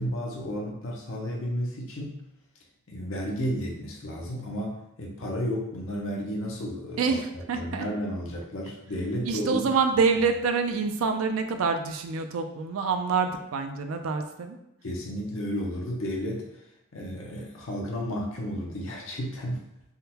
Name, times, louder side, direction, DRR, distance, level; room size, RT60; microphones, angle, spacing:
voice 1, 0.0-2.2 2.9-7.2 7.5-9.7 14.8-16.4 16.9-19.6, equal, 65° left, -2 dB, 0.6 m, -32 dB
voice 2, 7.0-7.9 9.3-14.6, right 5 dB, 75° right, 7 dB, 0.4 m, -26 dB
3.6 x 2.1 x 2.8 m, 0.85 s
head